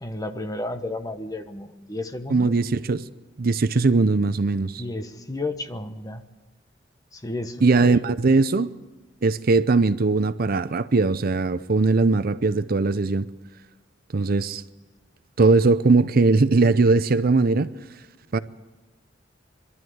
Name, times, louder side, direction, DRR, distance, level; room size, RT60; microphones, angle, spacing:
voice 1, 0.0-2.6 4.8-6.2 7.1-8.0, left 2 dB, 20° left, 1.2 m, -32 dB
voice 2, 2.3-3.0 3.4-4.8 7.6-8.7 9.2-13.3 14.1-14.6 15.4-17.7 18.3-18.4, right 3 dB, 50° right, 0.6 m, -20 dB
23.0 x 12.5 x 9.5 m
head